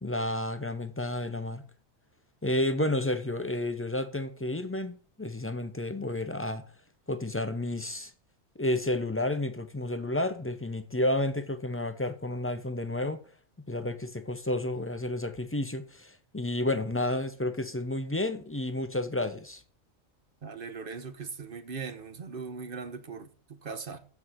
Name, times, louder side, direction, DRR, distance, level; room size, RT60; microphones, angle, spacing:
voice 1, 0.0-1.6 2.4-6.6 7.1-8.1 8.6-13.2 13.7-19.6, left 1 dB, 15° left, 0.4 m, -31 dB
voice 2, 20.4-24.0, right 5 dB, 45° right, 1.1 m, -39 dB
7.4 x 6.3 x 7.7 m
omnidirectional pair, 1.4 m